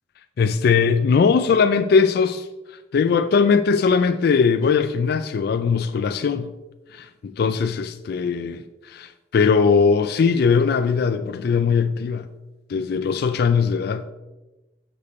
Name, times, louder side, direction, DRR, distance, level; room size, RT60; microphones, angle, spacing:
voice 1, 0.4-2.5 2.9-6.5 6.9-7.1 7.4-12.3 12.7-14.0, left 5 dB, 60° left, 0.3 m, -20 dB
6.7 x 6.7 x 4.2 m
head